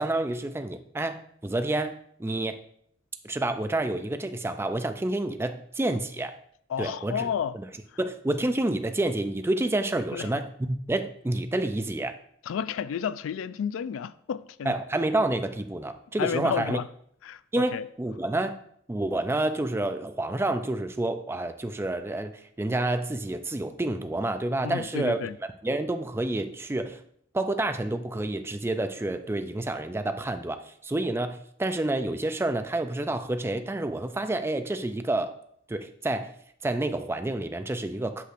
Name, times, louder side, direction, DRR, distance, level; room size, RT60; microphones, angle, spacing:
voice 1, 0.0-2.6 3.2-6.3 6.8-7.3 7.5-7.6 8.0-12.1 14.7-16.8 17.5-18.6 18.9-25.2 25.6-27.0 27.3-35.3 35.7-36.3 36.6-38.2, right 2 dB, 15° right, 0.4 m, -29 dB
voice 2, 6.7-7.6 10.1-10.3 12.4-14.7 16.2-16.9 17.2-17.9 24.6-25.4, left 7 dB, 85° left, 0.3 m, -31 dB
8.3 x 6.0 x 2.5 m
head